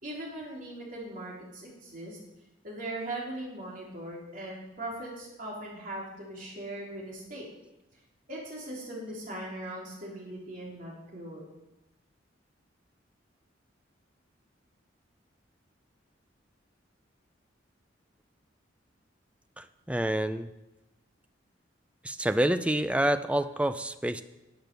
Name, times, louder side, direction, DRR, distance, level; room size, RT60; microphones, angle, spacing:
voice 1, 0.0-2.2 2.6-7.5 8.3-11.4, right 1 dB, 45° right, -4 dB, 3.7 m, -39 dB
voice 2, 19.6-20.5 22.0-24.2, right 1 dB, 5° right, 11 dB, 0.4 m, -28 dB
10.5 x 8.0 x 6.9 m, 1.0 s
head